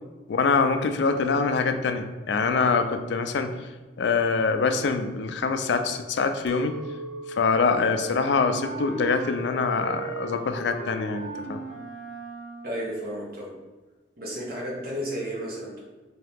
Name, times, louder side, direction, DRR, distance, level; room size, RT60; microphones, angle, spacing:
voice 1, 0.3-3.5 4.0-6.8 7.3-11.6, left 4 dB, 65° left, 8 dB, 0.3 m, -24 dB
Chink clink, 6.5-11.6, right 2 dB, 85° right, 0.4 m, -44 dB
Wind instrument woodwind instrument, 7.9-12.9, right 2 dB, 25° right, 1.5 m, -37 dB
voice 2, 12.6-13.5 14.2-15.8, equal, 50° right, -4 dB, 1.0 m, -33 dB
3.8 x 2.8 x 3.5 m, 1.2 s
head